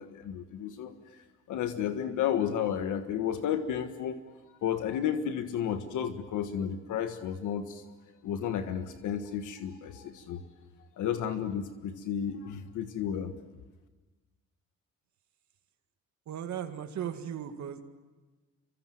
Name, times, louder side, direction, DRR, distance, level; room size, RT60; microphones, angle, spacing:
voice 1, 0.0-4.2 4.6-7.8 8.2-10.4 11.0-13.3, left 9 dB, 80° left, 8 dB, 1.5 m, -32 dB
voice 2, 16.3-17.8, right 9 dB, 70° right, 7 dB, 1.9 m, -37 dB
26.0 x 23.5 x 7.7 m, 1.2 s
cardioid pair, 90°, 30 cm